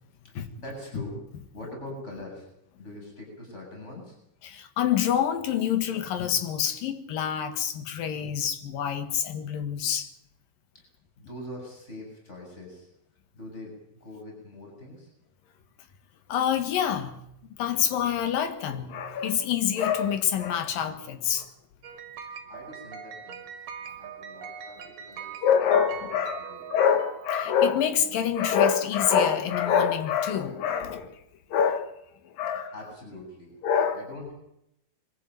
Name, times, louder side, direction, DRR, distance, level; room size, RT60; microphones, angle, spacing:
voice 1, 0.2-1.2 1.5-2.5 2.8-4.2 10.7-10.9 11.2-12.9 13.3-15.1 17.8-17.9 22.2-23.4 23.8-26.2 26.5-26.8 32.7-33.5 33.9-34.3, left 1 dB, 20° left, 8.2 m, -43 dB
voice 2, 4.4-10.1 16.3-17.2 17.6-21.5 25.4-31.2 31.5-31.9 32.2-32.7 33.6-34.0, left 8 dB, 85° left, 3.4 m, -26 dB
sound 1, 21.8-27.8, right 7 dB, 80° right, 3.3 m, -41 dB
22.5 x 15.0 x 9.3 m
omnidirectional pair, 3.9 m